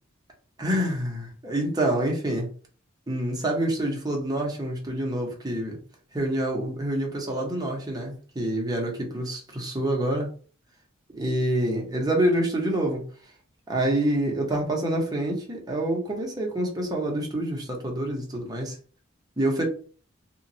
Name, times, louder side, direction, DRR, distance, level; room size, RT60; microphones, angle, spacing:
voice 1, 0.6-2.5 3.1-5.8 6.1-10.3 11.1-13.0 13.7-18.8 19.4-19.6, right 1 dB, 20° right, 0 dB, 0.7 m, -27 dB
2.9 x 2.2 x 2.7 m, 0.41 s
head